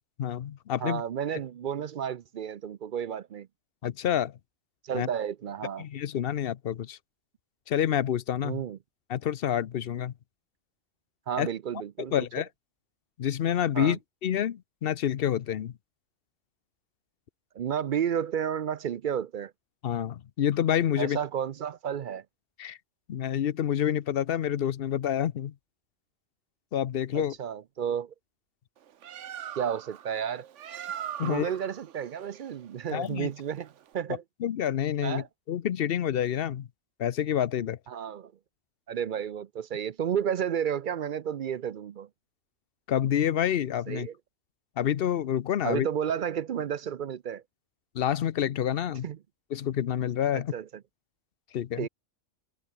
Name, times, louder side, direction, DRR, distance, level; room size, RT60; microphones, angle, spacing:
voice 1, 0.2-1.0 3.8-4.4 4.9-5.1 5.8-7.0 7.7-8.6 9.1-10.1 11.4-11.5 12.0-12.5 13.2-15.7 19.8-21.2 22.6-22.8 23.1-25.5 26.7-27.4 31.2-31.5 32.9-33.3 34.4-36.7 37.0-37.8 42.9-44.1 44.8-45.9 47.9-49.1 49.5-50.5 51.5-51.9, left 10 dB, 60° left, 0.8 m, -28 dB
voice 2, 0.8-3.5 4.8-5.8 8.4-8.8 11.3-12.1 13.7-14.0 17.5-19.5 21.0-22.2 27.1-28.1 29.6-30.5 31.2-33.7 33.9-34.2 35.0-35.3 37.9-38.3 38.9-42.1 43.9-44.1 45.6-47.4 49.0-49.2 50.3-50.7 51.8-51.9, right 8 dB, 55° right, 0.6 m, -32 dB
Bird, 28.8-34.0, right 10 dB, 80° right, 1.2 m, -41 dB
omnidirectional pair, 1.2 m